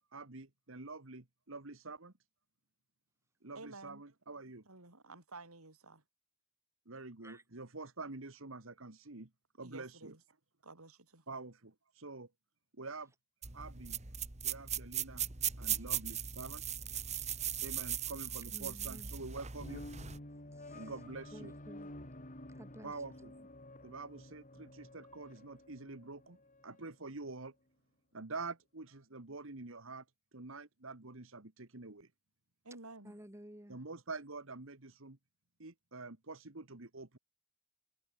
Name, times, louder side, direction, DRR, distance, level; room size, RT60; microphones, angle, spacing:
voice 1, 0.0-2.1 3.4-4.6 6.9-9.3 9.6-10.1 11.3-12.3 12.8-13.1 13.5-14.0 14.4-15.2 15.6-16.8 17.6-19.8 20.7-21.5 22.8-23.3 23.8-26.4 26.6-27.5 28.1-30.1 30.3-32.1 33.7-35.2 35.6-37.2, right 3 dB, 65° right, 1.8 m, -47 dB
voice 2, 3.5-4.0 4.6-6.0 9.6-10.2 10.6-11.2 32.6-33.2, right 3 dB, 90° right, 6.5 m, -52 dB
sound 1, 13.4-20.2, right 9 dB, 30° right, 1.7 m, -39 dB
voice 3, 18.5-19.1 20.5-20.9 21.3-21.9 22.5-22.9 23.4-23.5 33.0-33.8, equal, 15° right, 2.7 m, -53 dB
sound 2, 19.6-26.9, left 1 dB, 35° left, 4.1 m, -51 dB
head